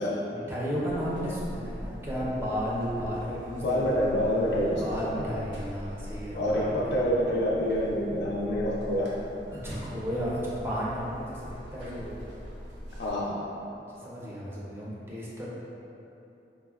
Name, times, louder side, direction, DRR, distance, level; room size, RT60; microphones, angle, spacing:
voice 1, 0.3-3.9 4.3-7.0 9.5-12.2 13.9-15.5, equal, 15° right, -7 dB, 0.5 m, -34 dB
Buzz, 0.9-13.1, equal, 75° right, 0.6 m, -42 dB
voice 2, 3.6-5.3 6.3-9.2 13.0-13.4, equal, 60° left, -6 dB, 0.3 m, -27 dB
4.2 x 2.0 x 2.3 m, 2.9 s
head